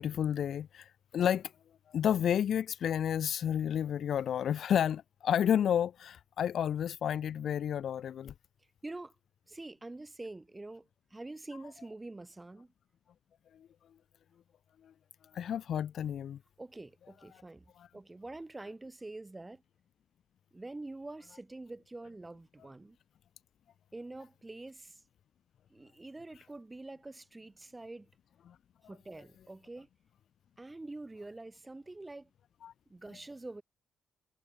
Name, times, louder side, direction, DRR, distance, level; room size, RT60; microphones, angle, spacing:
voice 1, 0.0-1.5 1.9-8.3 13.5-13.7 14.8-14.9 15.3-16.4 28.5-28.6 32.6-32.7, left 9 dB, 65° left, 0.7 m, -31 dB
voice 2, 8.8-9.1 9.5-12.7 16.6-19.6 20.5-23.0 23.9-25.0 25.7-28.1 28.9-29.9 30.6-32.3 32.9-33.6, right 2 dB, 15° right, 6.7 m, -46 dB
cardioid pair, 90°, 0 cm